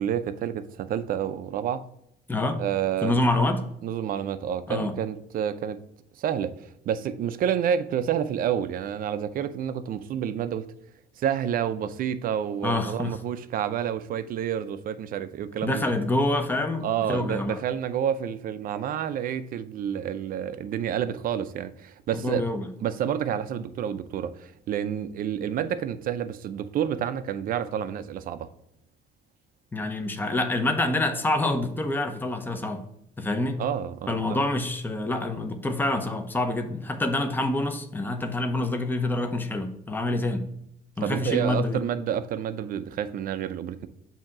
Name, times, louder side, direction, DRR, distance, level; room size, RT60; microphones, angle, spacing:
voice 1, 0.0-1.8 2.6-3.2 3.8-5.8 6.2-10.7 11.2-15.9 16.8-22.4 22.8-28.5 33.6-34.4 41.0-43.9, right 9 dB, 55° right, 0.6 m, -29 dB
voice 2, 2.3-2.6 3.0-3.6 4.7-4.9 12.6-13.2 15.6-17.6 22.1-22.7 29.7-32.8 33.2-33.6 34.1-40.5 41.0-41.8, left 2 dB, 10° left, 0.7 m, -26 dB
7.3 x 2.9 x 5.9 m
cardioid pair, 110°, 17 cm